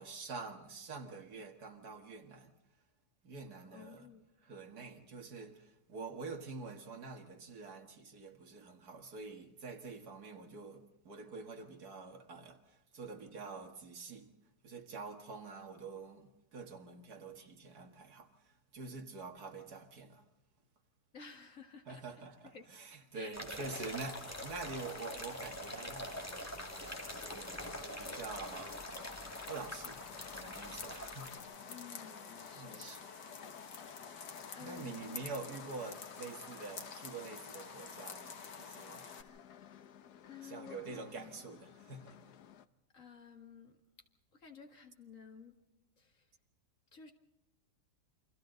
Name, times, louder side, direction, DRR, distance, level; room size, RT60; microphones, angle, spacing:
voice 1, 0.0-2.5 3.2-4.1 4.5-14.3 14.6-20.2 21.9-29.2 29.5-31.5 32.6-33.0 34.6-39.1 40.4-42.2, right 4 dB, 65° right, 2.3 m, -47 dB
voice 2, 3.7-4.3 21.1-22.0 22.4-22.7 23.1-23.7 31.7-33.5 34.5-35.2 40.2-41.4 42.9-43.8 44.3-45.6 46.0-46.3 46.9-47.1, left 6 dB, 50° left, 2.3 m, -54 dB
sound 1, 23.3-31.4, equal, 10° left, 2.3 m, -45 dB
sound 2, 23.6-39.2, left 5 dB, 85° left, 2.3 m, -49 dB
sound 3, 26.9-42.7, left 9 dB, 70° left, 1.4 m, -56 dB
29.0 x 24.5 x 4.0 m
omnidirectional pair, 1.8 m